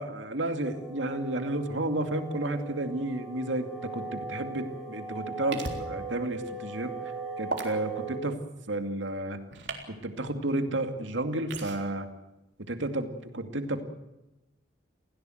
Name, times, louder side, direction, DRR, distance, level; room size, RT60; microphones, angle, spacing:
voice 1, 0.0-6.9 7.4-8.4 8.7-9.4 9.9-12.1 12.7-13.8, right 1 dB, 90° right, 6 dB, 2.4 m, -32 dB
sound 1, 0.6-8.2, right 4 dB, ahead, 6.4 m, -39 dB
sound 2, 5.5-5.8 7.5-7.7 9.5-9.8 11.5-11.8, right 3 dB, 70° right, 3.6 m, -34 dB
28.5 x 16.5 x 7.9 m, 0.97 s
head